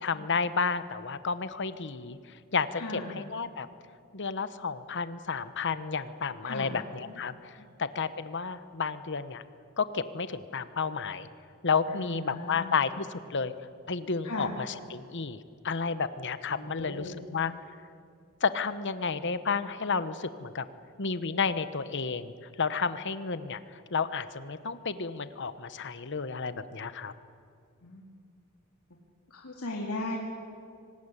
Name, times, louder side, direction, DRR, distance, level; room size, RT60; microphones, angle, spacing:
voice 1, 0.0-3.7 4.1-7.5 7.8-9.4 9.8-11.3 11.6-13.5 13.9-17.5 18.4-20.6 21.0-27.1, left 5 dB, 55° left, 13 dB, 1.1 m, -31 dB
voice 2, 2.7-3.2 6.4-6.8 7.1-7.2 7.6-7.7 11.9-12.8 14.2-14.5 16.5-17.2 27.8-28.0 29.3-30.2, left 2 dB, 80° left, 0 dB, 2.6 m, -38 dB
25.0 x 19.0 x 9.9 m, 2.3 s
head